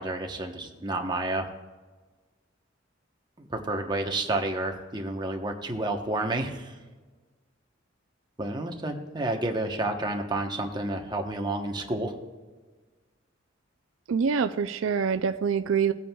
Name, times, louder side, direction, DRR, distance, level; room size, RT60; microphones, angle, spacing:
voice 1, 0.0-1.5 3.4-6.8 8.4-12.2, right 2 dB, 20° right, 3 dB, 1.0 m, -30 dB
voice 2, 14.1-15.9, right 6 dB, 90° right, 10 dB, 0.4 m, -25 dB
18.0 x 8.4 x 2.3 m, 1.3 s
head